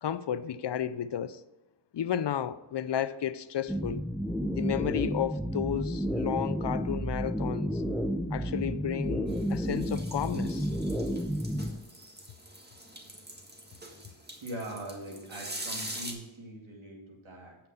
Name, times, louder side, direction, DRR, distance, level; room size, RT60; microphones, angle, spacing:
voice 1, 0.0-1.4 1.9-4.0 4.5-7.8 8.3-10.7, left 9 dB, 60° left, 0.6 m, -32 dB
sound 1, 3.7-11.7, equal, ahead, 0.6 m, -31 dB
sound 2, 9.3-16.1, right 1 dB, 20° right, 1.8 m, -44 dB
voice 2, 14.4-17.6, right 1 dB, 75° right, 2.5 m, -42 dB
8.6 x 5.9 x 5.6 m
cardioid pair, 45°, 48 cm